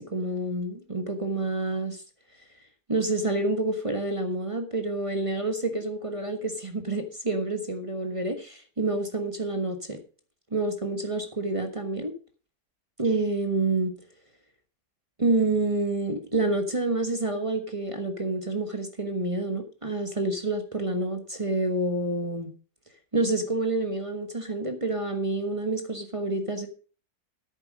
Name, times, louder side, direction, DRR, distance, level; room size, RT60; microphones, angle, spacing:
voice 1, 0.0-2.0 2.9-10.0 10.5-12.1 13.0-14.0 15.2-22.5 23.1-26.7, right 2 dB, 20° right, 6 dB, 1.3 m, -28 dB
10.0 x 9.0 x 5.1 m, 0.38 s
omnidirectional pair, 1.6 m